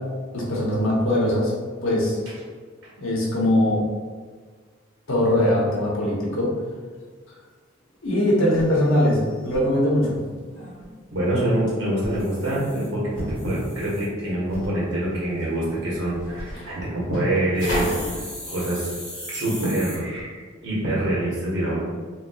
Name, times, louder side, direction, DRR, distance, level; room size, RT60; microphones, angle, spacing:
voice 1, 0.3-1.5 1.8-2.2 3.0-3.8 5.1-6.5 8.0-10.2, left 1 dB, 85° left, -4 dB, 0.9 m, -21 dB
sound 1, 7.4-7.5 7.9-8.0 8.2-8.3 8.6-9.6 11.9-14.1 14.5-14.7 16.1-16.5 17.6-20.0, equal, 5° left, 0.9 m, -38 dB
sound 2, 10.2-20.2, equal, 55° left, 1.2 m, -37 dB
voice 2, 11.1-13.0 13.3-18.9 19.3-21.8, right 1 dB, 65° right, -7 dB, 1.4 m, -25 dB
3.0 x 2.8 x 2.9 m, 1.5 s
head